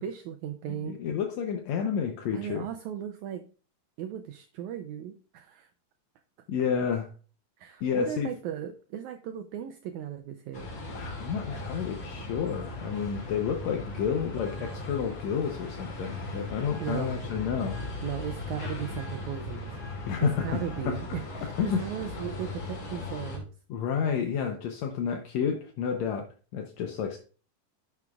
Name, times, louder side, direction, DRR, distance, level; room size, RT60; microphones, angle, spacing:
voice 1, 0.0-1.0 2.3-3.5 4.0-5.7 7.6-10.7 16.8-17.4 17.8-19.7 20.2-23.5, right 10 dB, 85° right, 7 dB, 1.7 m, -37 dB
voice 2, 0.7-2.7 6.5-7.1 7.8-8.3 10.9-17.8 20.1-21.0 21.6-21.8 23.7-26.3 26.5-27.2, left 7 dB, 75° left, 4 dB, 1.6 m, -30 dB
sound 1, 10.5-23.4, left 2 dB, 50° left, 3.3 m, -38 dB
10.5 x 7.1 x 2.3 m, 0.38 s
omnidirectional pair, 4.0 m